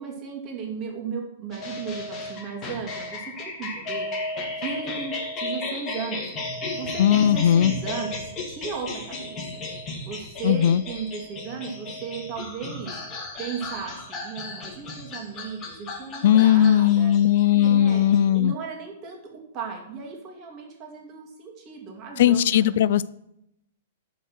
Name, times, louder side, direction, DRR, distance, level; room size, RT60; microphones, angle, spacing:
voice 1, 0.0-6.3 6.7-9.6 10.1-12.9 13.4-17.1 17.5-22.9, right 6 dB, 35° right, 1 dB, 2.7 m, -36 dB
sound 1, 1.5-18.4, left 2 dB, 25° left, 2.4 m, -34 dB
voice 2, 7.0-7.7 10.4-10.8 16.2-18.5 22.2-23.1, left 10 dB, 65° left, 18 dB, 0.3 m, -18 dB
12.0 x 4.7 x 6.0 m, 0.81 s
hypercardioid pair, 135°, 0 cm